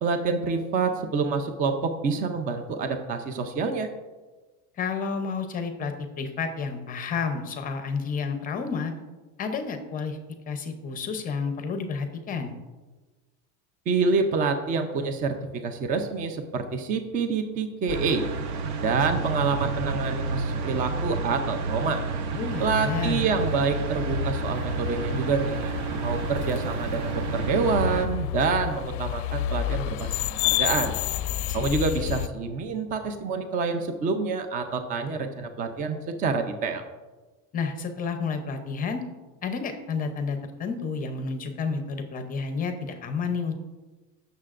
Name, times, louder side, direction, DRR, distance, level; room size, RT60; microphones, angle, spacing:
voice 1, 0.0-3.9 13.9-15.3 15.6-18.3 18.8-22.0 22.6-30.9 31.5-36.8, right 4 dB, 25° right, 7 dB, 0.5 m, -27 dB
voice 2, 4.8-8.9 9.4-10.2 10.5-12.5 22.4-23.2 31.5-31.8 37.5-39.0 39.4-43.5, left 5 dB, 25° left, 7 dB, 0.6 m, -30 dB
sound 1, 17.9-28.1, right 3 dB, 75° right, 1.0 m, -30 dB
sound 2, 22.6-32.3, left 13 dB, 65° left, 0.5 m, -31 dB
15.0 x 6.7 x 2.5 m, 1.2 s
cardioid pair, 160°, 36 cm